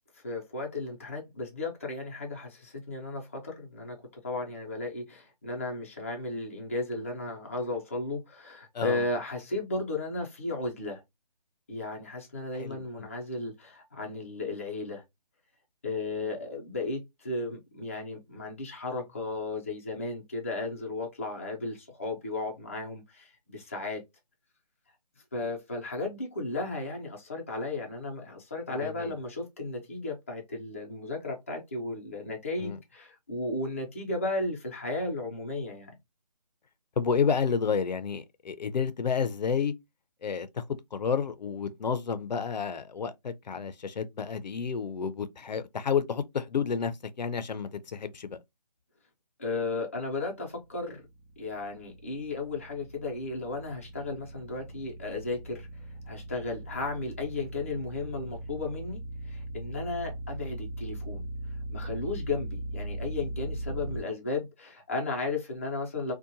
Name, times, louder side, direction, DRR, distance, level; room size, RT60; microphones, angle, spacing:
voice 1, 0.2-11.0 11.7-15.0 15.8-24.0 25.3-35.9 49.4-51.0 51.4-55.7 56.1-61.2 61.7-66.1, left 2 dB, 20° left, 0.4 m, -34 dB
voice 2, 12.6-13.1 28.8-29.1 32.6-32.8 37.0-39.7 40.2-40.6 40.9-48.3, left 6 dB, 80° left, 0.5 m, -30 dB
sound 1, 50.7-64.0, right 1 dB, 60° right, 0.9 m, -39 dB
2.7 x 2.1 x 2.5 m
hypercardioid pair, 165°, 21 cm